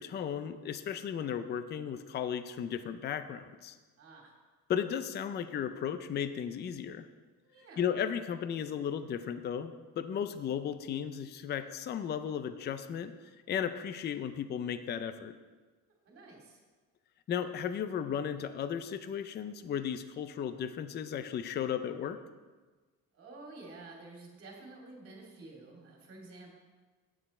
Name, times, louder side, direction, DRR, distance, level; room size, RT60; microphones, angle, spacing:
voice 1, 0.0-3.8 4.7-7.1 7.8-13.1 13.5-15.3 17.3-22.2, left 8 dB, 30° left, 10 dB, 0.4 m, -35 dB
voice 2, 4.0-4.3 7.4-7.8 16.0-16.6 23.1-26.6, right 3 dB, 40° right, -1 dB, 2.7 m, -50 dB
9.2 x 8.9 x 4.3 m, 1.3 s
cardioid pair, 155°, 33 cm